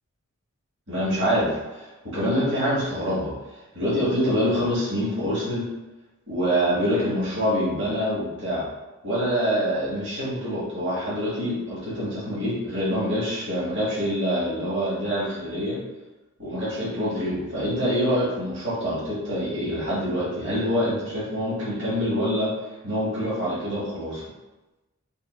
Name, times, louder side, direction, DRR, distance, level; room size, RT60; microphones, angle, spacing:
voice 1, 0.9-3.3 3.7-5.6 6.3-8.6 9.0-15.8 16.4-22.5 22.8-24.2, equal, 55° right, -9 dB, 1.4 m, -25 dB
3.6 x 2.7 x 3.6 m, 1.1 s
head